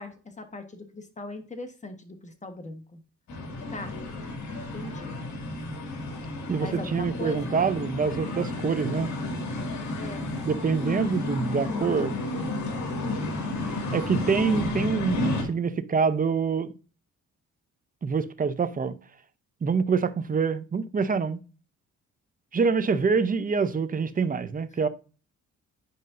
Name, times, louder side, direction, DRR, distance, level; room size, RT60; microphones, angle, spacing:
voice 1, 0.0-3.0 3.7-4.0 4.7-5.2 6.6-7.4 10.0-10.3, left 2 dB, 25° left, 1.4 m, -39 dB
sound 1, 3.3-15.4, left 2 dB, 70° left, 2.2 m, -31 dB
voice 2, 6.5-9.1 10.4-12.2 13.9-16.7 18.0-19.0 19.6-21.4 22.5-24.9, right 5 dB, 30° right, 0.7 m, -26 dB
9.5 x 5.2 x 2.6 m
cardioid pair, 90°, 30 cm